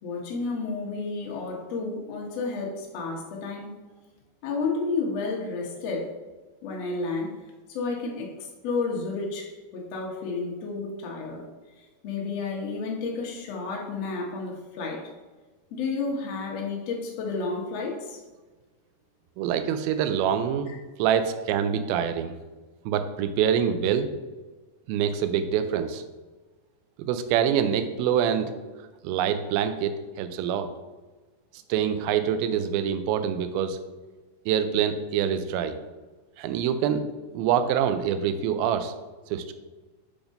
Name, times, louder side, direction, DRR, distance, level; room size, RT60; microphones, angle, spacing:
voice 1, 0.0-3.7 4.4-6.1 6.6-7.3 7.7-11.5 12.0-15.0 15.7-18.2 20.7-20.8, left 4 dB, 75° left, -1 dB, 1.4 m, -31 dB
voice 2, 19.4-20.7 21.0-22.3 22.9-24.1 24.9-26.0 27.0-28.5 29.0-30.7 31.7-33.8 34.5-35.8 36.4-37.0 37.3-38.9 39.3-39.5, right 8 dB, 80° right, 9 dB, 2.3 m, -25 dB
7.0 x 3.7 x 5.2 m, 1.3 s
omnidirectional pair, 4.6 m